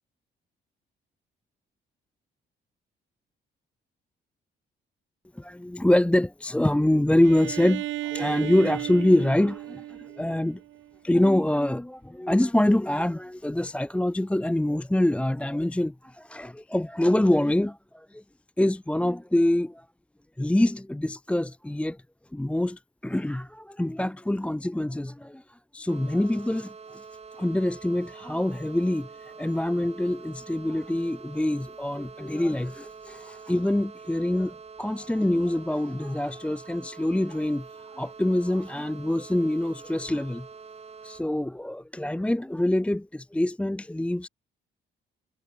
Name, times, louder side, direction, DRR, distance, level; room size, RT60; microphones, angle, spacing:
voice 1, 5.4-10.6 11.0-18.2 18.6-19.8 20.4-22.0 22.3-25.4 25.7-27.0 27.4-37.7 38.0-40.5 41.0-44.3, left 1 dB, 5° left, 0.7 m, -25 dB
Bowed string instrument, 7.2-11.0, right 15 dB, 75° right, 0.5 m, -35 dB
sound 1, 25.9-41.2, right 5 dB, 30° right, 1.4 m, -45 dB
cardioid pair, 90°, 20 cm